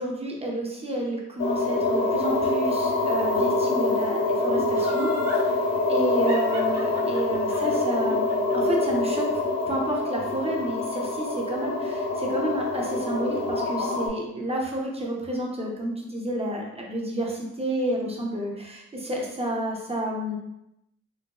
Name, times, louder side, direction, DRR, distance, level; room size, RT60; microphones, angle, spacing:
voice 1, 0.0-5.1 5.9-9.3 9.7-20.4, right 1 dB, 20° right, -2 dB, 0.7 m, -30 dB
sound 1, 1.4-14.1, left 2 dB, 55° left, 0.8 m, -25 dB
Laughter, 4.7-5.5 6.3-9.4 9.7-9.8, right 1 dB, 60° right, 1.1 m, -39 dB
3.8 x 2.1 x 2.8 m, 0.85 s
cardioid pair, 90°, 30 cm